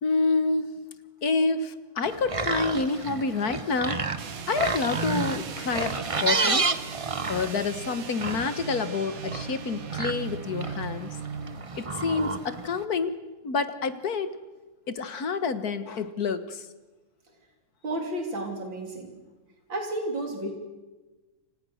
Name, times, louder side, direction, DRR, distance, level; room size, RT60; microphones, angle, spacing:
voice 1, 0.0-0.7 1.2-4.0 4.5-6.7 7.3-11.1 11.8-13.2 13.4-14.3 14.9-16.6, left 4 dB, 55° left, 11 dB, 1.8 m, -28 dB
sound 1, 2.0-12.8, right 4 dB, 25° right, 0.7 m, -31 dB
sound 2, 4.1-11.7, right 6 dB, 50° right, 1.6 m, -38 dB
voice 2, 17.8-19.2 19.7-20.5, right 1 dB, 85° right, 2 dB, 3.9 m, -32 dB
29.0 x 27.0 x 6.5 m, 1.2 s
omnidirectional pair, 2.0 m